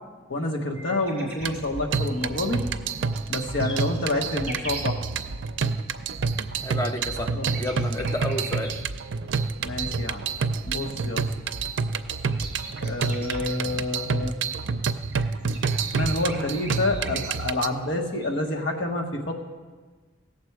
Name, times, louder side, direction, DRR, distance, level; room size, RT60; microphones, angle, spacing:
voice 1, 0.3-2.6 3.3-5.0 7.3-7.5 9.6-10.2 10.7-11.3 12.8-14.3 15.9-19.3, left 2 dB, 65° left, 1 dB, 1.4 m, -28 dB
sound 1, 0.7-4.9 6.5-8.7 11.7-11.8 12.1-13.6 15.0-17.7 18.2-18.8, right 1 dB, 5° right, 2.7 m, -42 dB
sound 2, 1.4-17.7, right 5 dB, 65° right, 0.5 m, -28 dB
voice 2, 6.6-8.8, left 1 dB, 15° left, 4 dB, 0.8 m, -31 dB
17.5 x 7.2 x 4.7 m, 1.4 s
head